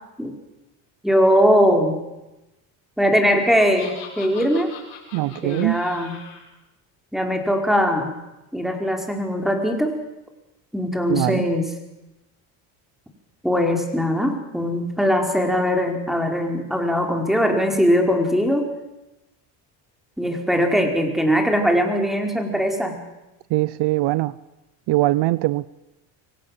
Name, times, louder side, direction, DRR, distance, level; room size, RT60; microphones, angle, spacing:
voice 1, 1.0-2.0 3.0-4.7 5.3-6.1 7.1-8.1 8.5-9.9 10.7-11.7 13.4-18.7 20.2-23.0, equal, ahead, 3 dB, 4.8 m, -20 dB
Laughter, 3.4-6.4, left 8 dB, 75° left, 6.4 m, -40 dB
voice 2, 5.1-5.8 11.1-11.5 23.5-24.3 24.9-25.7, right 18 dB, 60° right, 19 dB, 0.7 m, -21 dB
24.0 x 17.5 x 7.5 m, 0.98 s
supercardioid pair, 80°, 47 cm